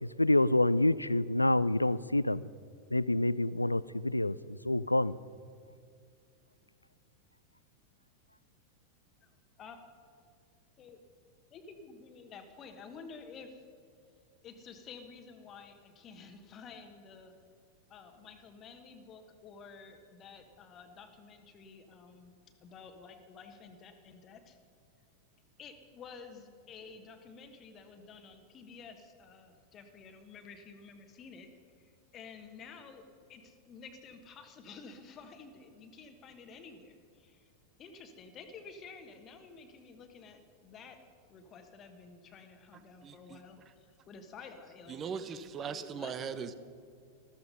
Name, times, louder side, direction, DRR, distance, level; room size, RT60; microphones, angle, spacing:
voice 1, 0.0-2.4 2.9-5.2, left 1 dB, 85° left, 19 dB, 0.3 m, -27 dB
voice 2, 11.5-13.6 14.4-17.3 17.9-22.3 22.6-24.6 25.6-31.5 31.8-37.5 37.8-41.0 41.3-45.1 45.6-46.4, left 5 dB, 30° left, 7 dB, 1.3 m, -51 dB
voice 3, 43.0-43.4 44.9-46.5, right 6 dB, 25° right, 13 dB, 0.8 m, -39 dB
14.0 x 14.0 x 5.4 m, 2.4 s
figure-of-eight pair, 90°, 0 cm